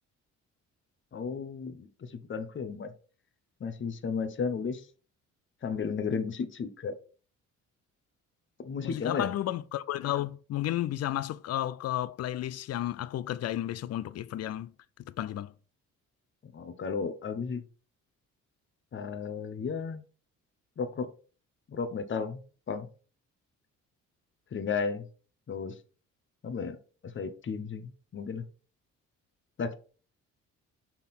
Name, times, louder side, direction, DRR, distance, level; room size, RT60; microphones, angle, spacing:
voice 1, 1.1-2.9 3.6-4.9 5.6-6.9 8.6-9.3 16.4-17.6 18.9-20.0 20.8-21.1 21.7-22.4 22.7-22.9 24.5-25.1 25.5-25.8 26.4-26.8 27.0-28.4 29.6-29.7, left 5 dB, 40° left, 0.9 m, -34 dB
voice 2, 8.8-14.7 15.1-15.5, left 13 dB, 55° left, 0.5 m, -32 dB
5.8 x 3.7 x 4.3 m
cardioid pair, 90°, 30 cm